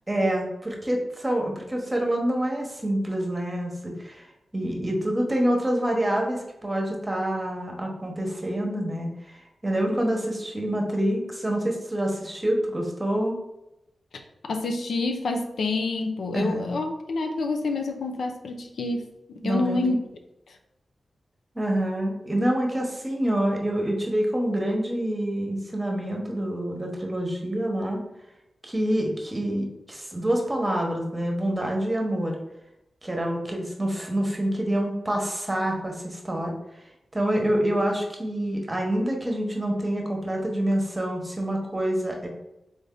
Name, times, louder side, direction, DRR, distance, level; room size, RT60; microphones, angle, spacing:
voice 1, 0.1-4.2 4.5-9.4 9.6-13.4 16.3-16.8 19.4-19.9 21.5-28.0 28.6-32.4 33.0-36.5 37.1-42.3, right 1 dB, 20° right, 1 dB, 1.0 m, -27 dB
voice 2, 14.5-19.1 19.4-20.0, left 3 dB, 85° left, 4 dB, 0.5 m, -27 dB
3.9 x 3.4 x 3.7 m, 0.89 s
wide cardioid pair, 100°, 0 cm